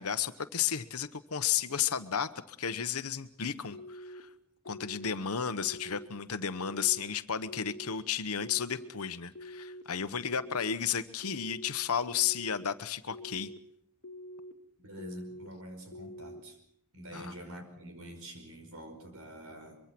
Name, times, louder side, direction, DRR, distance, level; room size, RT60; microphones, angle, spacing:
voice 1, 0.0-4.3 4.6-13.5 17.1-17.3, left 8 dB, 75° left, 11 dB, 1.0 m, -33 dB
sound 1, 3.7-4.2 4.7-5.1 5.6-6.1 6.5-7.0 7.5-8.0 8.4-8.9 9.3-9.8 10.3-10.8 11.2-11.7 12.2-12.6 13.1-13.6 14.0-14.5 15.0-15.5 15.9-16.4, equal, 55° left, 1.8 m, -46 dB
voice 2, 14.8-16.6 16.9-19.8, right 1 dB, 70° right, 6 dB, 5.3 m, -46 dB
24.0 x 23.5 x 6.1 m, 0.69 s
head